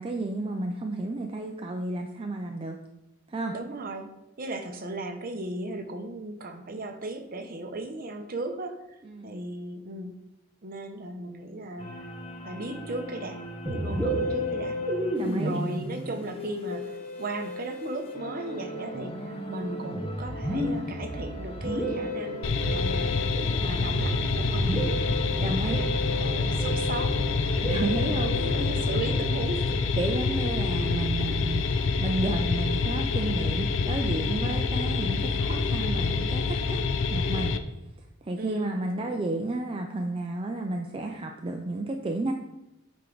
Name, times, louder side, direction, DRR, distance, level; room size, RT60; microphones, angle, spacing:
voice 1, 0.0-2.8 3.3-3.5 9.0-9.4 13.9-14.0 15.1-15.5 25.4-25.8 27.6-28.5 30.0-31.6 32.0-36.8 37.1-37.5 38.2-42.3, right 2 dB, 25° right, 3 dB, 0.4 m, -32 dB
voice 2, 3.5-4.1 4.4-8.8 9.2-10.2 10.6-11.9 12.4-14.8 15.4-24.9 25.3-27.2 28.0-29.9 38.4-39.2, right 2 dB, 45° right, 7 dB, 0.8 m, -36 dB
sound 1, 11.8-30.2, right 1 dB, 30° left, 0.8 m, -40 dB
Musical instrument, 13.7-31.3, equal, 5° left, 1.0 m, -33 dB
sound 2, 22.4-37.6, left 4 dB, 60° left, 0.5 m, -27 dB
8.4 x 4.5 x 3.9 m, 0.93 s
head